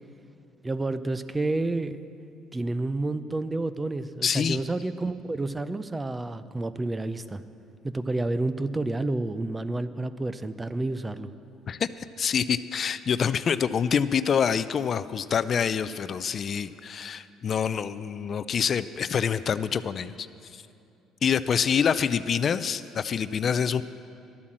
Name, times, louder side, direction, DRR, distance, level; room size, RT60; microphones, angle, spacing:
voice 1, 0.6-2.0 2.5-7.4 7.8-11.3, right 2 dB, 15° right, 13 dB, 0.5 m, -29 dB
voice 2, 4.2-4.6 11.7-20.1 20.5-20.6 21.2-23.8, left 7 dB, 45° left, 14 dB, 0.4 m, -26 dB
12.0 x 8.5 x 7.5 m, 2.6 s
cardioid pair, 95°, 0 cm